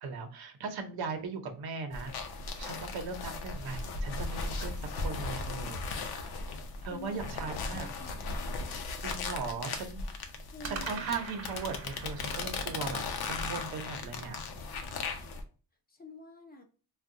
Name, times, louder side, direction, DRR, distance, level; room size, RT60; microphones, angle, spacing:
voice 1, 0.0-2.1 2.6-5.8 6.2-6.3 6.8-7.9 9.0-10.0 10.6-13.0 13.3-14.4, right 4 dB, 85° right, 5 dB, 0.8 m, -38 dB
sound 1, 1.9-15.4, left 3 dB, 90° left, 0.7 m, -37 dB
sound 2, 3.1-4.8 10.6-14.9, right 4 dB, 45° right, 0.8 m, -47 dB
voice 2, 6.9-7.3 7.7-8.5 10.5-11.1 15.9-16.6, left 3 dB, 25° left, 4 dB, 0.6 m, -47 dB
3.5 x 2.3 x 2.6 m, 0.37 s
cardioid pair, 115°, 37 cm